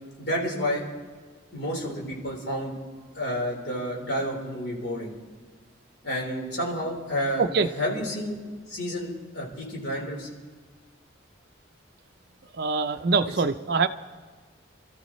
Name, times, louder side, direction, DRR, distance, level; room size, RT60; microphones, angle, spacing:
voice 1, 0.2-0.8 1.5-2.7 3.1-5.1 6.0-7.4 7.8-8.3 8.7-10.3, equal, 60° left, -3 dB, 4.1 m, -30 dB
voice 2, 7.4-7.7 12.5-13.9, right 4 dB, 55° right, 7 dB, 0.5 m, -24 dB
27.5 x 13.5 x 3.1 m, 1.5 s
head